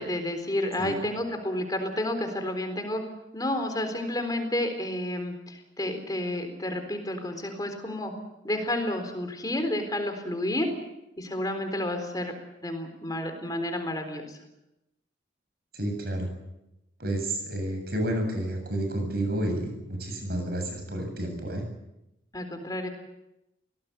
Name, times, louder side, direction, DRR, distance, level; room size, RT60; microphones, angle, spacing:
voice 1, 0.0-3.0 3.3-8.1 8.4-10.7 11.2-12.3 12.6-14.4 22.3-22.9, left 1 dB, 20° left, 6 dB, 4.0 m, -30 dB
voice 2, 15.7-16.3 17.0-21.6, right 1 dB, 55° right, 5 dB, 7.6 m, -30 dB
24.5 x 18.5 x 8.2 m, 0.90 s
head